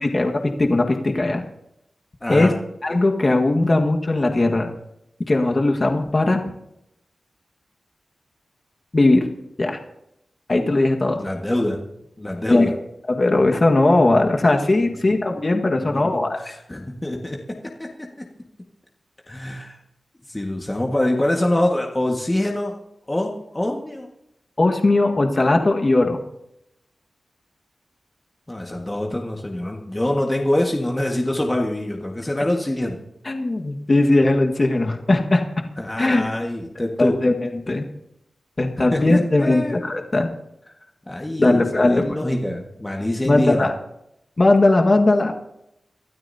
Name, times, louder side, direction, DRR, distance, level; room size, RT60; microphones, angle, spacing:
voice 1, 0.0-1.4 2.3-2.5 2.8-4.7 5.3-6.4 8.9-9.3 9.6-9.8 10.5-11.3 12.5-12.6 13.1-16.5 24.6-26.2 33.2-35.4 36.0-36.3 37.0-37.8 38.6-40.3 41.4-42.2 43.2-43.7 44.4-45.3, left 2 dB, 40° left, 2 dB, 1.6 m, -18 dB
voice 2, 2.2-2.5 11.1-11.8 12.2-12.7 15.8-17.9 19.3-19.8 20.3-22.8 23.1-24.1 28.5-33.0 35.8-37.2 38.8-39.8 41.1-43.7, left 1 dB, 20° left, 0 dB, 1.7 m, -25 dB
24.5 x 12.5 x 2.8 m, 0.81 s
cardioid pair, 55°, 0 cm